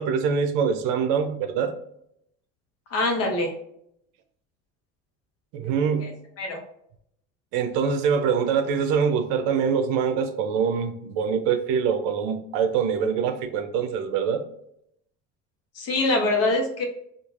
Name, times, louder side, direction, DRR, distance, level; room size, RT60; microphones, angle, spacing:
voice 1, 0.0-1.7 5.5-6.1 7.5-14.4, right 6 dB, 80° right, 7 dB, 0.6 m, -24 dB
voice 2, 2.9-3.5 6.0-6.1 6.4-6.6 15.8-16.8, left 2 dB, 50° left, 3 dB, 0.9 m, -24 dB
3.1 x 2.5 x 2.4 m, 0.74 s
supercardioid pair, 110°, 32 cm